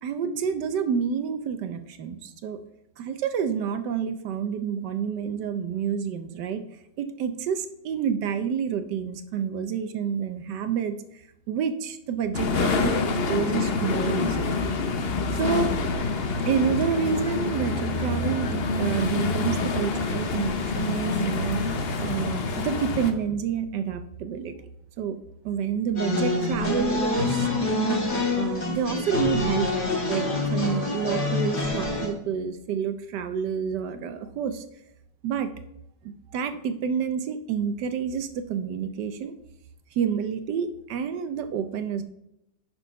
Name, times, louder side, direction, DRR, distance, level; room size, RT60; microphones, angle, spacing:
voice 1, 0.0-2.6 3.0-6.6 7.0-11.0 11.5-14.6 15.3-15.7 16.5-21.6 22.0-24.5 25.0-25.2 25.4-28.0 28.3-29.7 30.1-34.6 35.2-35.5 36.3-39.3 39.9-42.0, right 7 dB, 70° right, 10 dB, 1.2 m, -28 dB
sound 1, 12.3-23.1, left 3 dB, 55° left, 0.6 m, -27 dB
sound 2, 26.0-32.1, left 3 dB, 35° left, 2.4 m, -26 dB
9.9 x 4.3 x 5.6 m, 0.83 s
omnidirectional pair, 2.0 m